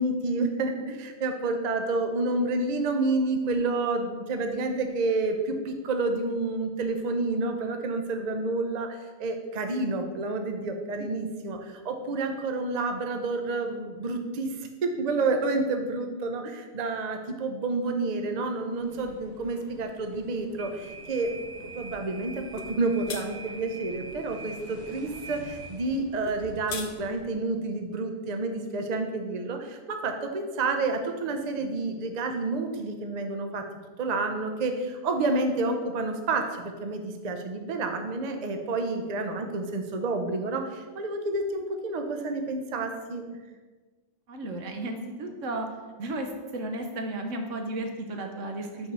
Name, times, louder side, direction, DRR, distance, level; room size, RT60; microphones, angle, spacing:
voice 1, 0.0-21.3 21.6-33.6 34.0-43.2 48.8-48.9, right 3 dB, 40° right, 5 dB, 0.7 m, -29 dB
sound 1, 18.7-27.3, right 3 dB, 65° right, 1.2 m, -44 dB
sound 2, 22.6-22.7 23.1-23.3 26.3-26.9, left 5 dB, 65° left, 0.9 m, -36 dB
voice 2, 44.3-45.7 46.0-46.3 46.5-48.9, right 2 dB, 85° right, 4 dB, 1.3 m, -34 dB
5.6 x 4.7 x 6.1 m, 1.3 s
omnidirectional pair, 1.3 m